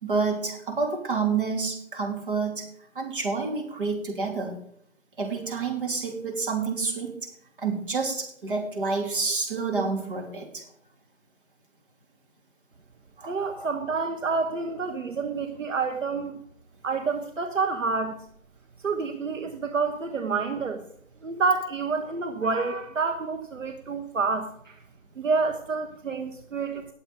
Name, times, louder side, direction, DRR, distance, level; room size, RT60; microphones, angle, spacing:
voice 1, 0.0-2.7 2.9-4.6 5.2-7.3 7.6-10.6 13.2-13.7, right 4 dB, 40° right, 1 dB, 3.3 m, -29 dB
voice 2, 13.3-16.4 16.8-18.2 18.8-20.8 21.2-24.8 25.2-26.9, right 4 dB, 70° right, 7 dB, 1.3 m, -28 dB
19.5 x 7.3 x 4.9 m, 0.69 s
figure-of-eight pair, 165°, 39 cm